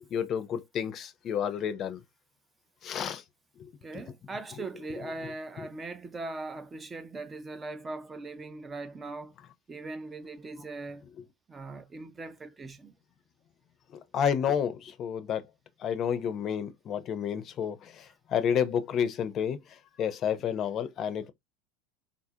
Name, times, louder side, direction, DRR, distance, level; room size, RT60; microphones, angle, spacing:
voice 1, 0.1-2.0 2.8-3.2 5.2-5.3 14.1-15.5 15.8-19.6 20.0-21.3, left 8 dB, 40° left, 0.5 m, -30 dB
voice 2, 3.8-9.3 9.7-11.0 11.5-12.9, right 3 dB, 20° right, 0.4 m, -40 dB
3.8 x 2.4 x 2.7 m
supercardioid pair, 125°, 0 cm